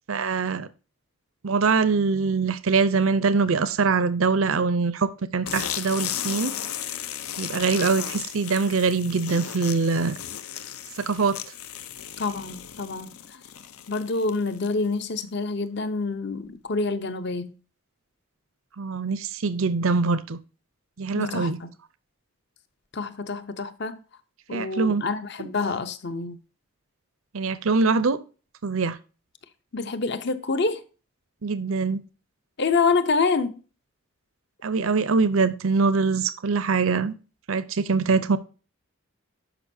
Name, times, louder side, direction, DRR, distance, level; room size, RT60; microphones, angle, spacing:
voice 1, 0.1-0.7 1.4-6.5 7.4-10.2 11.0-11.4 18.8-20.4 21.0-21.6 24.5-25.0 25.4-25.5 27.3-28.2 28.6-29.0 31.4-32.0 34.6-37.1 37.5-38.4, right 4 dB, 70° right, 0.6 m, -23 dB
sound 1, 5.4-14.9, left 10 dB, 85° left, 0.7 m, -35 dB
voice 2, 12.2-13.1 13.9-17.5 21.2-21.7 22.9-24.0 24.5-26.4 29.7-30.8 32.6-33.5, left 4 dB, 50° left, 0.7 m, -27 dB
11.0 x 5.3 x 2.7 m
head